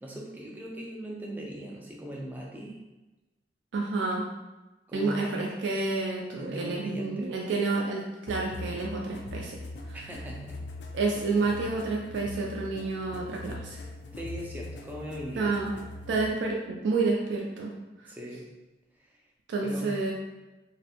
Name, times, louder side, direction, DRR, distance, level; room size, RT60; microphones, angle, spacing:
voice 1, 0.0-2.8 4.9-5.5 6.4-7.3 9.9-10.6 14.1-15.5 18.1-18.5 19.0-19.1 19.6-20.1, equal, 10° right, -2 dB, 0.3 m, -39 dB
voice 2, 3.7-4.2 4.9-8.0 8.3-9.6 9.9-10.0 10.9-13.8 15.4-15.7 16.1-17.7 19.5-20.1, right 3 dB, 90° right, -1 dB, 0.3 m, -29 dB
sound 1, 8.3-16.3, left 1 dB, 80° left, 0.3 m, -41 dB
2.5 x 2.0 x 2.8 m, 1.1 s
head